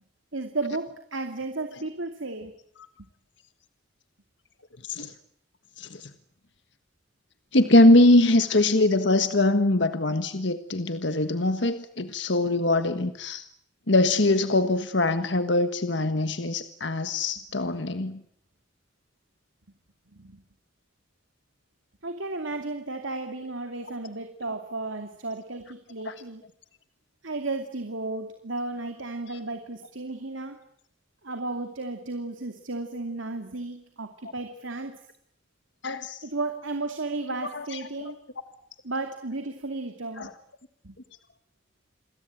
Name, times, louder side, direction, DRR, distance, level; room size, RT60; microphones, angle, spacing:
voice 1, 0.3-2.5 20.1-20.4 22.0-26.4 27.2-30.6 31.2-35.0 36.2-38.2 38.8-40.3 40.8-40.9, right 2 dB, 75° right, 6 dB, 2.6 m, -34 dB
voice 2, 7.5-13.4 13.9-18.2 26.0-26.1 35.8-36.2 37.5-37.6 38.0-38.1 40.2-40.3, left 2 dB, 65° left, 9 dB, 1.6 m, -22 dB
29.0 x 22.0 x 8.9 m, 0.69 s
head